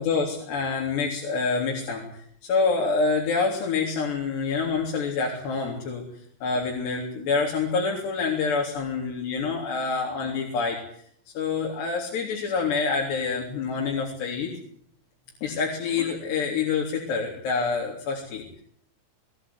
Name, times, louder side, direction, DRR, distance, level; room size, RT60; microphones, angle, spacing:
voice 1, 0.0-2.0 2.4-6.0 6.4-10.8 11.3-14.5 15.4-18.6, left 4 dB, 75° left, 0 dB, 5.6 m, -27 dB
21.5 x 20.0 x 9.7 m, 0.66 s
omnidirectional pair, 4.9 m